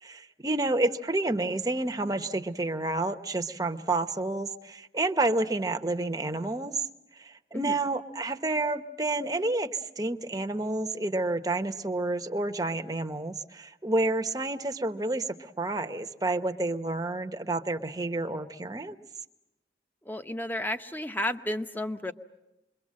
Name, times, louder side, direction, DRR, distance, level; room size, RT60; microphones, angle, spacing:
voice 1, 0.0-6.8 7.2-19.0, right 2 dB, 20° right, 6 dB, 0.9 m, -29 dB
voice 2, 20.0-22.1, left 1 dB, 10° left, 8 dB, 0.8 m, -32 dB
27.0 x 23.0 x 7.5 m, 0.94 s
head